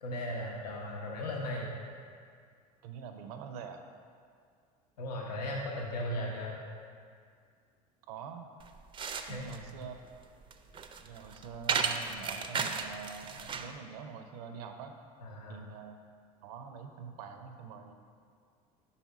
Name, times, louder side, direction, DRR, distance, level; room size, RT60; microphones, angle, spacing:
voice 1, 0.0-1.7 5.0-6.5 9.2-9.6 15.2-15.6, left 1 dB, 90° left, -2 dB, 0.7 m, -37 dB
voice 2, 2.8-3.8 8.1-8.5 9.3-10.0 11.0-14.9 15.5-16.0 16.4-17.9, right 6 dB, 75° right, 6 dB, 0.5 m, -45 dB
sound 1, 8.6-13.8, right 5 dB, 25° right, 0.4 m, -35 dB
5.6 x 4.2 x 4.7 m, 2.2 s
hypercardioid pair, 80°, 20 cm